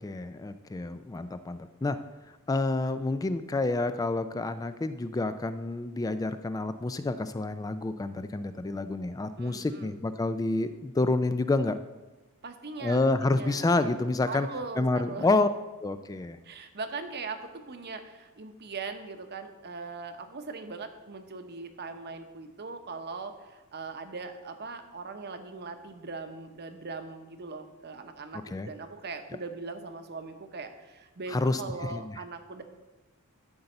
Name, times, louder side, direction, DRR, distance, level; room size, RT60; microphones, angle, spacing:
voice 1, 0.0-2.0 2.5-11.8 12.8-14.5 14.8-15.5 15.8-16.4 28.5-28.7 31.3-31.6 31.9-32.2, left 2 dB, 15° left, 11 dB, 0.3 m, -28 dB
voice 2, 9.4-10.0 12.4-13.7 14.3-15.3 16.4-32.6, right 4 dB, 50° right, 7 dB, 0.9 m, -40 dB
12.0 x 4.1 x 7.8 m, 1.2 s
head